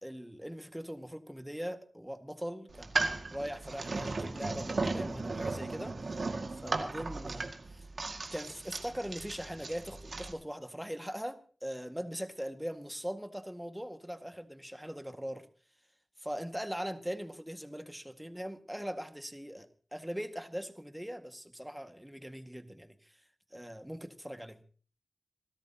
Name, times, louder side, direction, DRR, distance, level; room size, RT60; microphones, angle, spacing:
voice 1, 0.0-3.0 3.3-6.2 6.5-7.9 8.3-15.5 16.2-23.2 23.5-24.6, equal, 5° right, 8 dB, 1.8 m, -41 dB
sound 1, 2.7-10.3, right 3 dB, 70° right, 2.0 m, -36 dB
27.0 x 13.0 x 2.9 m, 0.41 s
cardioid pair, 40°, 0 cm